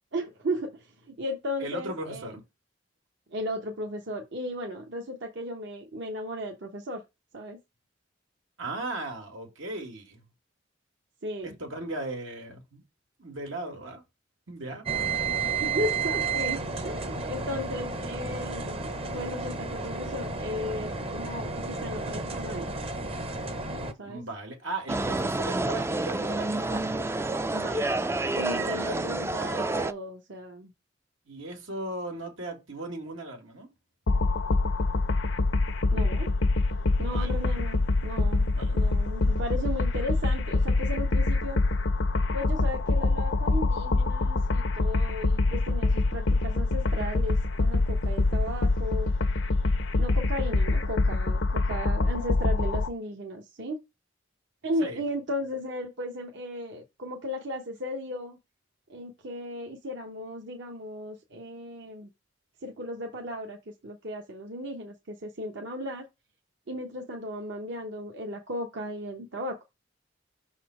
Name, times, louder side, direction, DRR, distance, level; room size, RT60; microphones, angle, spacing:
voice 1, 0.1-2.3 3.3-7.0 7.3-7.6 11.2-11.5 15.6-22.7 24.0-24.2 27.5-27.9 28.3-30.7 35.9-36.3 37.0-38.5 38.7-41.6 42.3-49.1 50.0-53.8 54.6-58.4 58.9-62.1 62.6-63.6 63.8-66.1 66.7-69.6, equal, 60° right, 1.0 m, -35 dB
voice 2, 1.6-2.4 8.6-10.2 11.4-12.8 13.2-14.0 14.5-15.1 24.0-26.9 28.8-29.1 31.3-33.7 37.1-37.4 38.5-38.9 54.8-55.0, right 2 dB, 85° right, 2.3 m, -37 dB
sound 1, 14.9-23.9, right 4 dB, 30° right, 0.8 m, -32 dB
sound 2, 24.9-29.9, right 2 dB, 15° right, 0.4 m, -29 dB
sound 3, 34.1-52.9, left 2 dB, 65° left, 0.7 m, -25 dB
6.0 x 4.2 x 4.8 m
head